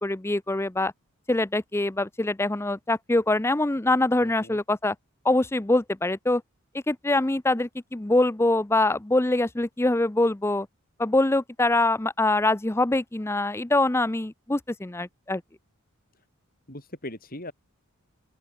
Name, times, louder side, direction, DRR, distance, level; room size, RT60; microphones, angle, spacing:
voice 1, 0.0-0.9 1.3-4.9 5.2-6.4 6.9-10.7 11.0-15.4, left 2 dB, 10° left, 0.5 m, -24 dB
voice 2, 4.2-4.6 16.7-17.5, left 1 dB, 40° left, 7.0 m, -39 dB
open air
head